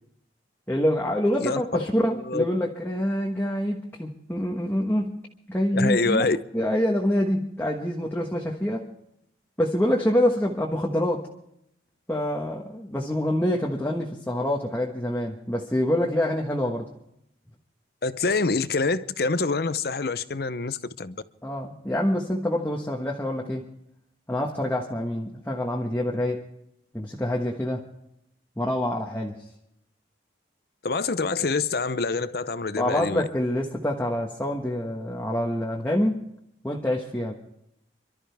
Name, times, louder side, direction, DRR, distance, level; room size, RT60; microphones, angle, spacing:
voice 1, 0.7-5.1 5.5-6.2 6.5-8.9 9.6-11.3 12.1-16.9 21.4-23.7 24.3-26.4 26.9-27.9 28.6-29.4 32.8-36.2 36.6-37.3, left 1 dB, 10° left, 1.3 m, -26 dB
voice 2, 2.1-2.5 5.7-6.4 18.0-21.2 30.8-33.2, left 3 dB, 55° left, 0.7 m, -26 dB
27.5 x 13.0 x 3.4 m
head